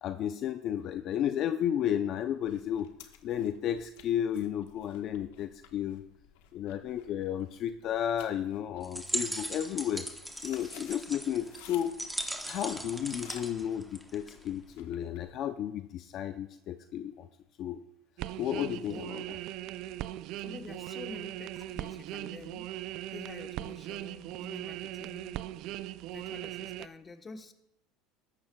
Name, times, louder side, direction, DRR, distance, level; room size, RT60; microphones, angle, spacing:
voice 1, 0.0-2.9 3.2-6.0 6.5-10.1 10.4-11.9 12.5-17.3 17.6-17.8 18.4-19.4, left 10 dB, 50° left, 8 dB, 0.5 m, -33 dB
sound 1, 2.4-15.4, left 9 dB, 80° left, 1.2 m, -56 dB
sound 2, 8.8-14.5, right 1 dB, 5° right, 1.1 m, -38 dB
sound 3, 18.2-26.9, right 14 dB, 60° right, 0.3 m, -39 dB
voice 2, 20.4-22.7 23.1-25.4 26.1-27.5, left 4 dB, 20° left, 6 dB, 1.2 m, -47 dB
14.0 x 12.0 x 2.3 m, 0.81 s
supercardioid pair, 115°, 0 cm